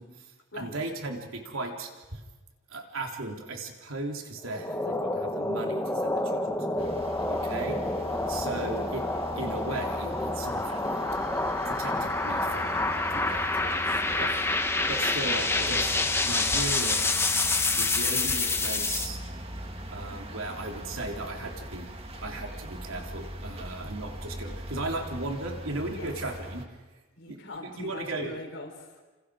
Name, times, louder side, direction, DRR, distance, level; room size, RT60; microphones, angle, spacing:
voice 1, 0.0-2.2 2.7-6.9 7.3-7.8 8.3-9.0 9.3-10.7 11.3-11.4 11.6-12.8 13.1-13.5 14.2-14.3 14.9-16.0 16.2-17.0 17.3-17.4 17.8-19.2 19.9-21.9 22.2-26.6 27.3-27.4 27.8-28.3, right 2 dB, 80° right, 2 dB, 3.5 m, -36 dB
voice 2, 4.5-5.0 7.4-7.6 13.3-14.3 15.6-15.7 26.0-26.1 27.2-29.0, left 2 dB, 60° left, 3 dB, 4.6 m, -43 dB
sound 1, 4.5-19.1, left 2 dB, 10° left, 1.2 m, -28 dB
sound 2, 6.8-26.7, equal, 30° right, 2.2 m, -41 dB
29.0 x 28.0 x 5.0 m, 1.2 s
head